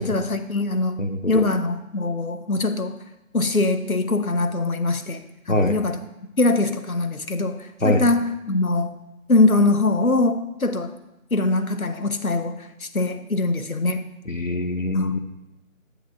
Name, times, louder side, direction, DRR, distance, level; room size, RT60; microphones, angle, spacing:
voice 1, 0.0-3.0 3.3-6.0 6.4-8.9 9.3-10.9 11.3-14.1 14.9-15.1, left 2 dB, 80° left, 8 dB, 1.1 m, -22 dB
voice 2, 1.0-1.5 5.5-5.8 7.8-8.0 14.3-15.2, left 1 dB, 65° left, 5 dB, 1.2 m, -23 dB
10.0 x 8.4 x 2.5 m, 0.93 s
figure-of-eight pair, 175°, 42 cm